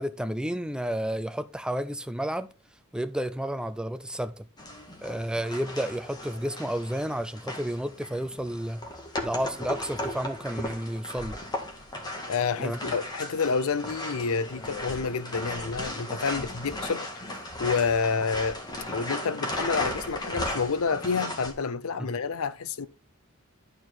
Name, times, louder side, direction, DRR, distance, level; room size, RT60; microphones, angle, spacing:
voice 1, 0.0-2.5 2.9-4.4 5.0-8.8 9.2-11.4 12.6-13.0, right 1 dB, 5° right, 0.4 m, -31 dB
sound 1, 4.6-21.5, left 1 dB, 20° left, 1.7 m, -36 dB
voice 2, 12.3-18.6 18.9-22.9, left 5 dB, 85° left, 0.6 m, -29 dB
11.5 x 4.6 x 4.5 m
head